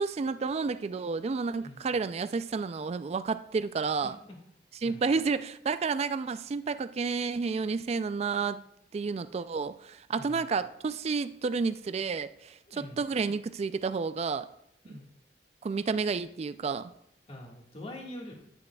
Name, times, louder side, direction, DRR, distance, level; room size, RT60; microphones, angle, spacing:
voice 1, 0.0-4.2 4.8-8.6 8.9-14.5 14.9-15.0 15.6-16.9, right 4 dB, 35° right, 12 dB, 0.3 m, -31 dB
voice 2, 1.6-1.9 4.0-4.1 4.8-5.0 10.1-10.5 12.7-13.0 14.8-15.1 17.3-18.3, left 1 dB, 35° left, 0 dB, 1.7 m, -44 dB
9.8 x 9.2 x 2.3 m, 0.73 s
head